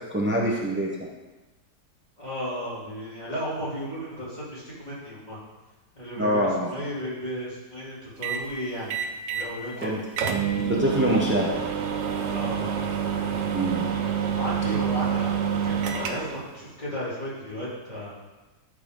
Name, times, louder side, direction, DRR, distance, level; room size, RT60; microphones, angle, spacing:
voice 1, 0.1-0.9 6.2-6.7 9.8-10.0 10.7-11.5 13.5-13.9, equal, 15° right, -3 dB, 0.4 m, -24 dB
voice 2, 2.2-5.4 5.9-10.0 12.3-12.8 14.3-18.1, equal, 25° left, -8 dB, 3.0 m, -34 dB
sound 1, 8.2-8.5 8.9-9.5 9.8-9.9 10.2-16.4, right 7 dB, 80° right, 1.4 m, -27 dB
13.0 x 5.0 x 3.8 m, 1.2 s
omnidirectional pair, 1.9 m